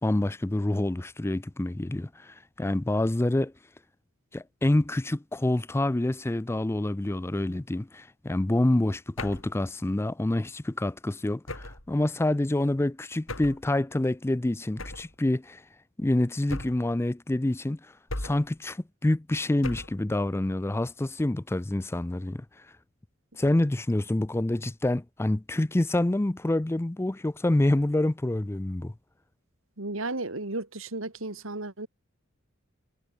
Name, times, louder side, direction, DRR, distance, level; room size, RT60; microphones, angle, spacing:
voice 1, 0.0-3.5 4.3-15.6 16.0-17.8 18.2-22.4 23.4-28.9, left 1 dB, 10° left, 0.4 m, -27 dB
sound 1, 9.2-9.6 11.5-11.9 13.3-13.7 14.8-15.2 16.5-17.0 18.1-18.6 19.6-20.1, left 2 dB, 75° left, 5.4 m, -37 dB
voice 2, 29.8-31.9, right 2 dB, 75° right, 2.7 m, -34 dB
head